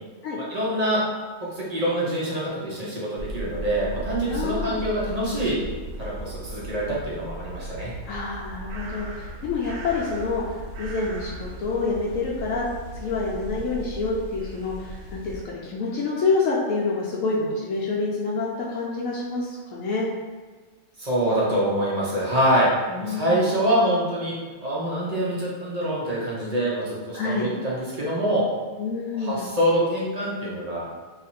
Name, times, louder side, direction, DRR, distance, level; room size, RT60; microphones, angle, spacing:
voice 1, 0.4-1.0 1.5-5.6 6.0-7.9 21.0-22.7 23.0-24.3 24.6-28.5 29.2-30.9, right 1 dB, 40° right, -6 dB, 0.6 m, -25 dB
sound 1, 3.2-15.4, right 1 dB, 75° right, 1.0 m, -37 dB
voice 2, 4.3-4.7 8.1-12.6 12.9-20.1 22.9-23.5 27.1-27.5 28.8-29.5, left 3 dB, 75° left, -4 dB, 1.0 m, -27 dB
2.8 x 2.4 x 4.1 m, 1.4 s
omnidirectional pair, 1.4 m